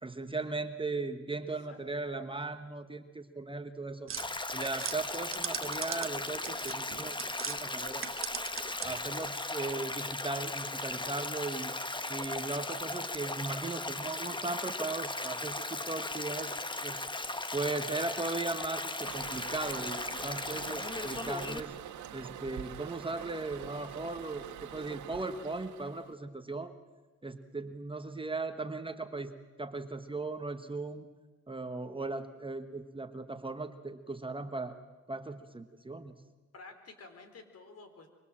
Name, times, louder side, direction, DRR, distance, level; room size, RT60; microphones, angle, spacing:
voice 1, 0.0-4.1 4.5-7.2 7.5-8.1 8.6-11.7 12.1-17.1 17.5-21.7 22.1-26.7 27.2-31.1 31.5-34.8 35.1-36.1, right 3 dB, 15° right, 7 dB, 1.4 m, -38 dB
sound 1, 4.1-7.6 7.9-9.2, right 8 dB, 45° right, 1.1 m, -40 dB
Stream, 4.2-21.6, left 2 dB, 15° left, 1.3 m, -37 dB
Toilet flush, 19.0-26.1, right 10 dB, 75° right, 1.6 m, -45 dB
voice 2, 36.5-38.1, left 3 dB, 55° left, 7 dB, 4.2 m, -51 dB
24.5 x 24.5 x 7.5 m, 1.2 s
cardioid pair, 90°, 30 cm